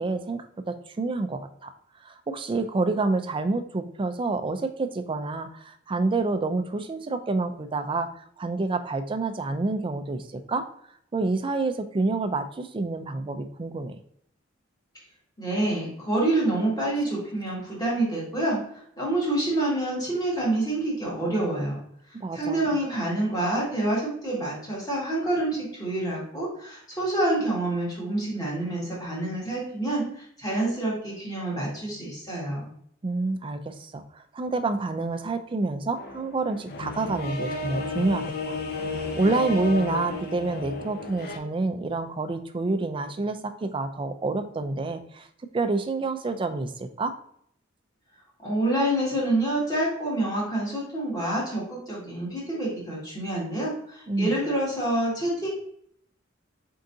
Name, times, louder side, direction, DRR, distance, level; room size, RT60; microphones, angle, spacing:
voice 1, 0.0-1.7 2.0-10.7 11.1-14.0 22.1-22.8 33.0-38.6 38.8-45.3 45.5-47.1 54.1-54.4, right 3 dB, 25° right, 8 dB, 0.4 m, -28 dB
voice 2, 15.4-21.8 22.3-32.7 48.4-55.5, right 1 dB, 20° left, -5 dB, 1.8 m, -27 dB
sound 1, 36.0-41.4, left 3 dB, 55° left, 0.7 m, -32 dB
4.5 x 3.8 x 2.6 m, 0.66 s
head